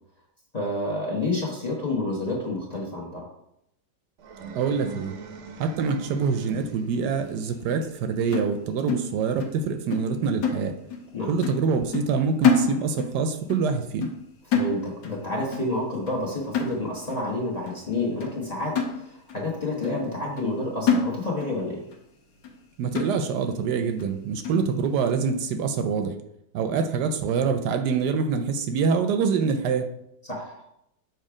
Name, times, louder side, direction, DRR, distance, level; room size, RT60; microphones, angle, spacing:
voice 1, 0.5-3.3 11.1-11.3 14.5-18.8 19.3-21.8 30.3-30.6, left 2 dB, 25° left, -2 dB, 1.0 m, -29 dB
sound 1, 4.2-7.1, right 4 dB, 60° right, 0.8 m, -41 dB
voice 2, 4.6-5.1 5.6-10.8 11.3-14.1 22.8-26.1 26.5-29.9, right 5 dB, 75° right, 8 dB, 1.1 m, -25 dB
sound 2, 8.3-9.6 9.9-10.1 10.4-11.1 11.4-11.7 11.9-13.2 13.5-13.7 14.0-14.3 14.5-15.2 15.5-15.8 16.1-16.2 16.5-17.2 17.7-17.8 18.2-18.3 18.8-19.4 19.8-19.9 20.4-20.6 20.9-21.6 21.9-22.0 22.4-22.6 23.0-23.5 24.0-24.1 24.4-24.7, left 5 dB, 90° left, 1.5 m, -27 dB
6.8 x 3.2 x 4.8 m, 0.80 s
omnidirectional pair, 1.9 m